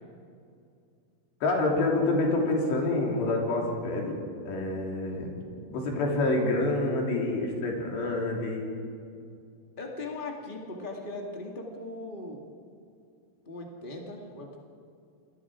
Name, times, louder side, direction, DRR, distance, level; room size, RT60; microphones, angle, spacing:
voice 1, 1.4-4.2 4.5-5.3 5.7-8.7, left 2 dB, 85° left, -1 dB, 5.5 m, -27 dB
voice 2, 9.8-12.4 13.4-14.6, left 2 dB, 60° left, 0 dB, 0.5 m, -39 dB
28.5 x 21.0 x 5.0 m, 2.4 s
omnidirectional pair, 4.8 m